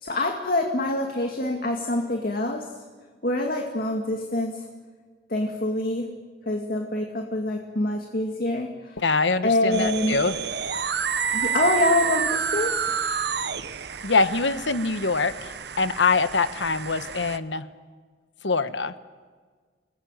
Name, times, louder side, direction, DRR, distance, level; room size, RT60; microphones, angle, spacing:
voice 1, 0.0-2.7 3.2-4.7 5.3-6.1 6.5-9.0 9.4-10.2 11.3-12.9, left 1 dB, 55° left, 3 dB, 2.3 m, -25 dB
voice 2, 9.0-10.4 14.0-17.7 18.4-18.9, left 4 dB, 80° left, 12 dB, 1.2 m, -24 dB
sound 1, 9.7-17.4, right 7 dB, 60° right, 1.1 m, -29 dB
28.5 x 20.0 x 9.2 m, 1.5 s
head